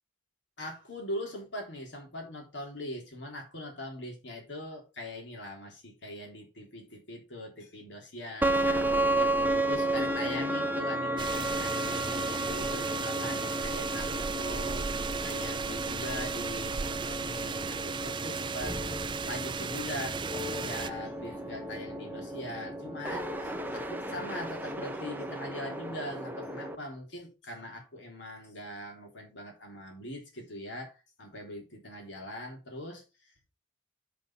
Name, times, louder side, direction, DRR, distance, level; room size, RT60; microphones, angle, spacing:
voice 1, 0.6-33.3, left 1 dB, 70° left, 3.4 m, -41 dB
sound 1, 8.4-26.8, right 1 dB, 10° right, 0.9 m, -33 dB
sound 2, 11.2-20.9, right 6 dB, 25° right, 0.4 m, -36 dB
7.6 x 5.4 x 5.7 m
head